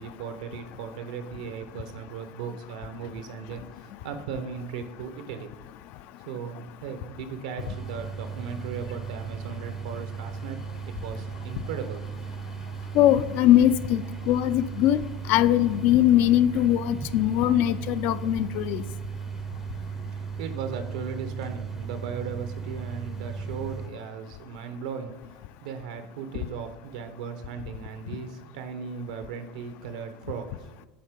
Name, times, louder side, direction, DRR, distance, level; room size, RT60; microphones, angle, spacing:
voice 1, 0.0-5.5 6.3-10.6 10.9-12.0 19.8-25.1 25.6-30.9, right 6 dB, 85° right, 8 dB, 1.0 m, -37 dB
sound 1, 7.6-23.9, right 6 dB, 10° right, 0.5 m, -36 dB
voice 2, 12.9-18.8, left 12 dB, 55° left, 14 dB, 0.4 m, -21 dB
9.5 x 3.7 x 5.1 m, 1.1 s
supercardioid pair, 135°, 4 cm